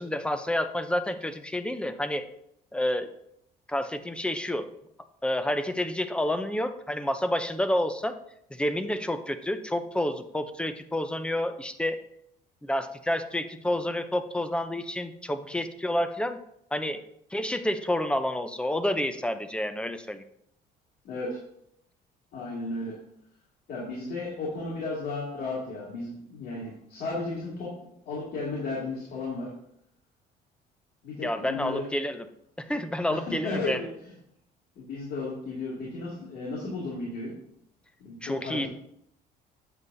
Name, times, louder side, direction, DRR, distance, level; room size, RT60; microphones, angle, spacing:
voice 1, 0.0-2.2 2.7-3.1 3.7-4.7 5.2-8.1 8.5-12.0 12.6-16.4 16.7-17.0 17.3-20.2 31.2-32.2 32.6-33.8 38.2-38.7, left 1 dB, 5° left, 9 dB, 0.6 m, -29 dB
voice 2, 21.0-21.4 22.3-22.9 23.7-27.8 28.1-29.5 31.0-31.9 33.1-33.2 33.4-33.9 34.8-37.4 38.0-38.7, left 3 dB, 65° left, -5 dB, 2.3 m, -34 dB
8.0 x 7.3 x 2.7 m, 0.74 s
cardioid pair, 110°, 17 cm